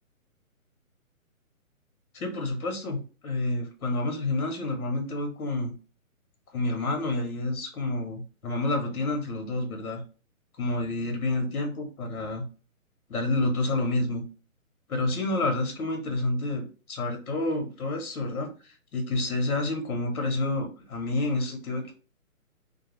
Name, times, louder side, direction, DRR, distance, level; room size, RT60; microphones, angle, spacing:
voice 1, 2.1-5.7 6.5-10.0 10.6-12.4 13.1-14.2 14.9-18.5 18.9-21.9, left 2 dB, 80° left, 3 dB, 1.0 m, -29 dB
2.3 x 2.3 x 2.9 m, 0.36 s
hypercardioid pair, 170°, 43 cm